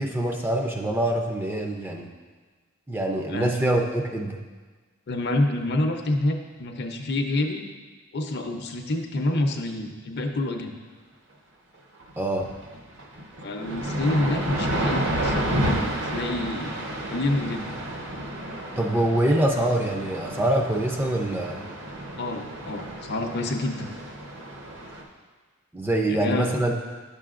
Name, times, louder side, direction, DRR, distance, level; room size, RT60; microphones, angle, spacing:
voice 1, 0.0-2.1 2.9-4.4 12.2-12.5 18.8-21.6 25.7-26.8, right 1 dB, 10° right, 1 dB, 0.5 m, -24 dB
voice 2, 5.1-7.7 8.1-10.7 13.4-16.7 17.1-17.6 22.2-23.9 26.1-26.5, left 2 dB, 50° left, 4 dB, 0.6 m, -27 dB
sound 1, 12.0-12.1 12.4-25.0, right 1 dB, 60° right, 1.0 m, -31 dB
9.5 x 6.8 x 2.5 m, 1.4 s
head